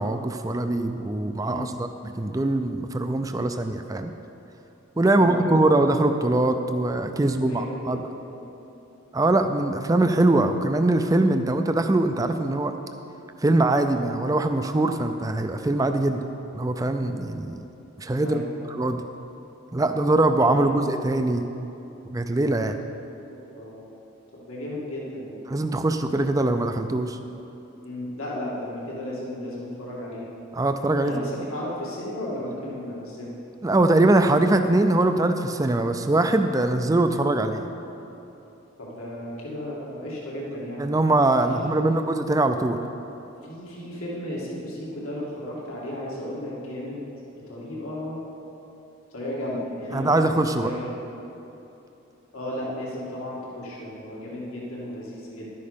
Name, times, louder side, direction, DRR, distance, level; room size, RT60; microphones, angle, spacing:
voice 1, 0.0-4.1 5.0-8.0 9.1-12.7 13.4-16.2 16.5-17.6 18.0-18.4 18.7-19.0 19.7-21.5 22.1-22.8 25.5-27.2 30.5-31.2 33.6-37.7 40.8-42.8 49.9-50.7, right 2 dB, 15° right, 7 dB, 0.4 m, -22 dB
voice 2, 5.1-5.7 7.5-8.4 16.0-16.2 18.2-18.4 20.5-20.7 23.3-23.9 24.3-25.4 27.8-30.3 31.0-33.3 38.8-40.8 41.5-42.0 43.4-47.0 47.3-48.2 49.1-50.9 52.3-55.5, left 1 dB, 90° left, -5 dB, 2.3 m, -34 dB
12.0 x 9.6 x 5.1 m, 2.9 s
head